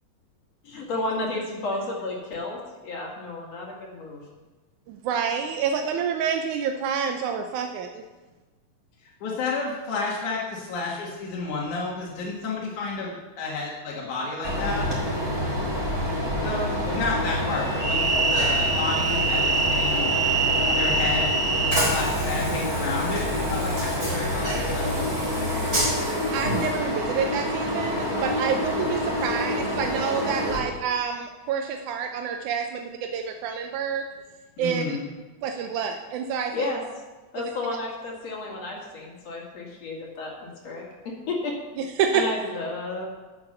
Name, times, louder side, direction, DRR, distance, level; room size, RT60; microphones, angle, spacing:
voice 1, 0.6-4.2 36.5-36.8 37.3-41.6 42.1-43.1, left 2 dB, 60° left, -1 dB, 3.0 m, -32 dB
voice 2, 4.9-8.0 26.3-34.1 34.6-35.0 35.4-36.7 41.8-42.2, right 7 dB, 85° right, 4 dB, 2.2 m, -28 dB
voice 3, 9.2-14.9 16.4-20.1 20.7-21.4 21.7-25.8 34.6-35.1, left 3 dB, 80° left, -3 dB, 3.2 m, -31 dB
Train, 14.4-30.6, right 1 dB, 20° right, 3.9 m, -25 dB
11.5 x 7.0 x 6.7 m, 1.2 s
omnidirectional pair, 3.4 m